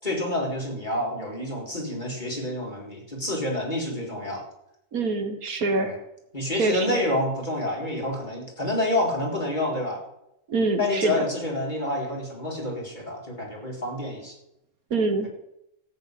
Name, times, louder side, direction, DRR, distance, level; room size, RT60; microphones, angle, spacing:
voice 1, 0.0-4.4 5.8-6.0 6.3-10.0 10.8-14.3, left 1 dB, 30° left, -2 dB, 4.3 m, -28 dB
voice 2, 4.9-5.9 6.6-7.0 10.5-11.3 14.9-15.3, right 3 dB, 65° right, 7 dB, 1.9 m, -25 dB
14.0 x 6.9 x 9.4 m, 0.83 s
omnidirectional pair, 1.6 m